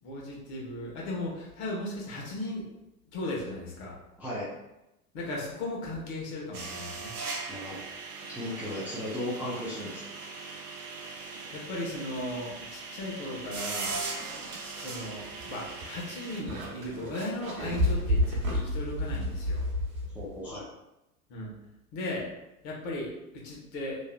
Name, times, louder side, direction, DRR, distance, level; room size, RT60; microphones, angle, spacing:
voice 1, 0.0-2.7 3.1-3.9 5.1-7.2 11.5-14.0 14.6-19.6 21.3-21.5 21.9-22.2 22.6-24.0, left 1 dB, 50° left, -3 dB, 1.1 m, -36 dB
voice 2, 4.2-4.5 7.5-7.8 8.3-10.0 20.1-20.7, left 1 dB, 5° right, -10 dB, 0.4 m, -35 dB
sound 1, 6.5-16.4, right 4 dB, 90° right, 0.6 m, -39 dB
sound 2, 14.1-20.4, left 1 dB, 65° right, 1.0 m, -31 dB
3.0 x 2.4 x 2.2 m, 0.92 s
figure-of-eight pair, 90°, 45 cm